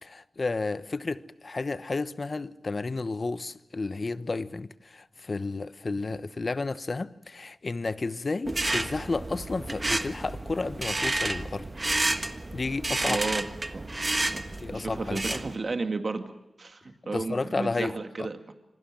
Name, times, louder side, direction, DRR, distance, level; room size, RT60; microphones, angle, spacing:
voice 1, 0.0-11.7 12.5-13.3 14.6-15.4 17.1-18.3, left 3 dB, 45° left, 1.1 m, -32 dB
sound 1, 8.5-15.6, right 2 dB, 25° right, 1.4 m, -30 dB
voice 2, 13.1-13.4 13.7-13.9 14.3-14.4 14.7-16.3 16.6-18.5, right 3 dB, 50° right, 2.2 m, -33 dB
26.5 x 26.0 x 7.6 m
wide cardioid pair, 90°, 0 cm